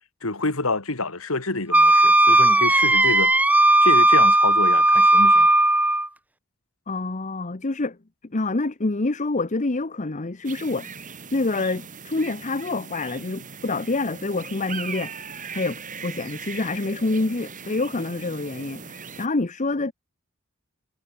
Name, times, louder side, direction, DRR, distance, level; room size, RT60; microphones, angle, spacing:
voice 1, 0.2-3.3 3.8-5.5, left 2 dB, 80° left, 3.2 m, -27 dB
Wind instrument woodwind instrument, 1.7-6.1, right 1 dB, 5° right, 0.8 m, -16 dB
voice 2, 6.9-8.0 8.3-11.0 11.3-19.9, left 2 dB, 35° left, 0.9 m, -27 dB
sound 1, 10.4-19.3, right 6 dB, 40° right, 3.1 m, -39 dB
head